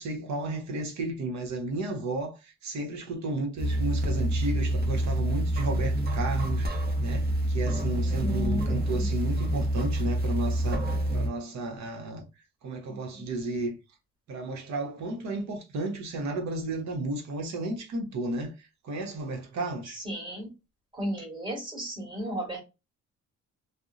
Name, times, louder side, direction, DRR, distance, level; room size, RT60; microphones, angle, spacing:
voice 1, 0.0-12.2 12.6-13.8 14.3-20.0, right 2 dB, 65° right, 0.9 m, -33 dB
sound 1, 3.6-11.3, right 1 dB, 30° right, 0.8 m, -27 dB
voice 2, 8.2-9.1 12.9-13.0 20.0-20.5 20.9-22.6, equal, 15° right, 1.4 m, -34 dB
2.6 x 2.0 x 2.4 m
cardioid pair, 90°, 30 cm